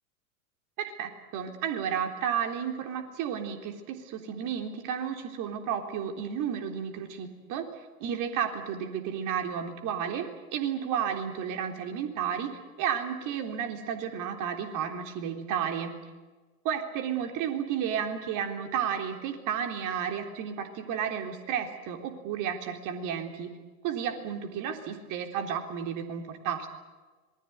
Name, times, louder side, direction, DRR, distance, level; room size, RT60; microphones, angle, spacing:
voice 1, 0.8-7.7 8.0-10.3 10.5-12.5 12.8-15.9 16.6-23.5 23.8-26.7, right 8 dB, 45° right, 4 dB, 3.7 m, -32 dB
26.5 x 20.5 x 8.1 m, 1.3 s
figure-of-eight pair, 90°, 45 cm